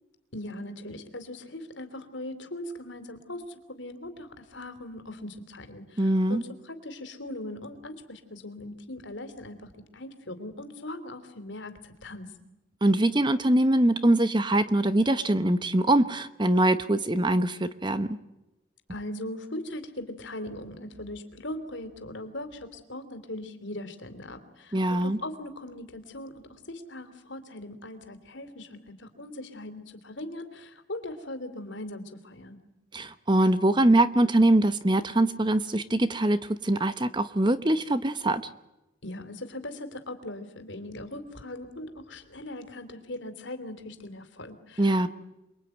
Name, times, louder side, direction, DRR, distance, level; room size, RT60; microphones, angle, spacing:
voice 1, 0.3-12.3 18.9-32.6 39.0-45.1, left 1 dB, 60° left, 9 dB, 3.3 m, -40 dB
voice 2, 6.0-6.4 12.8-18.2 24.7-25.2 32.9-38.4 44.8-45.1, right 1 dB, 20° right, 12 dB, 0.9 m, -23 dB
28.5 x 22.5 x 9.2 m, 0.98 s
head